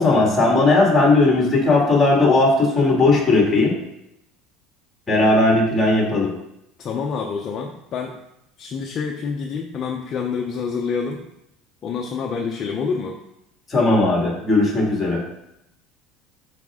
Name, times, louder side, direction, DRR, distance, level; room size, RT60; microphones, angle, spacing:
voice 1, 0.0-3.8 5.1-6.3 13.7-15.2, left 2 dB, 10° left, -2 dB, 2.3 m, -17 dB
voice 2, 6.8-8.2 8.6-11.2 11.8-13.2, left 5 dB, 30° left, 1 dB, 0.7 m, -27 dB
12.0 x 5.0 x 3.7 m, 0.82 s
cardioid pair, 175°, 0 cm